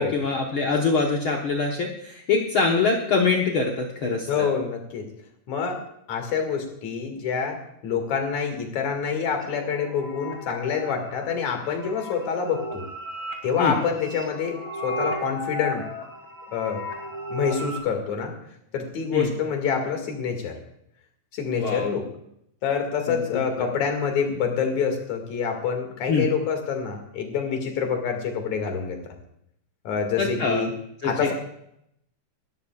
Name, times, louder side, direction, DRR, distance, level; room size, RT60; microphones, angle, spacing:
voice 1, 0.0-4.5 13.6-13.8 19.1-19.3 21.5-21.9 23.1-23.2 23.6-23.7 26.1-26.3 30.2-30.7 31.0-31.3, left 4 dB, 80° left, 0 dB, 1.1 m, -24 dB
voice 2, 4.3-5.1 5.5-5.8 6.1-7.6 7.8-12.8 13.4-14.6 14.8-15.9 16.5-16.8 17.3-18.3 18.7-20.5 21.3-22.0 22.6-29.0 29.8-30.7 31.0-31.3, left 6 dB, 55° left, 4 dB, 3.2 m, -26 dB
sound 1, 9.4-17.8, equal, 30° left, 2.6 m, -35 dB
28.0 x 13.0 x 2.4 m, 0.75 s
omnidirectional pair, 4.2 m